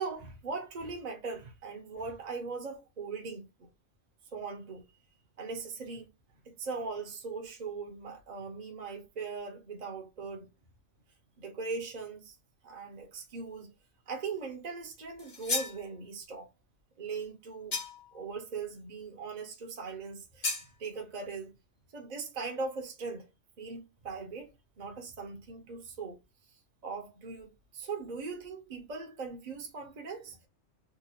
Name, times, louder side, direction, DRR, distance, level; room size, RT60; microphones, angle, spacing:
voice 1, 0.0-3.7 4.3-4.9 5.4-6.1 6.4-10.5 11.4-12.4 12.6-13.7 14.1-16.5 17.0-17.8 18.1-20.5 20.8-21.5 21.9-23.3 23.6-26.2 26.8-30.5, right 4 dB, 40° right, 0.8 m, -40 dB
sound 1, 15.2-15.8 17.7-18.2 20.4-20.7, left 3 dB, 40° left, 1.0 m, -33 dB
3.8 x 2.3 x 2.8 m
omnidirectional pair, 1.3 m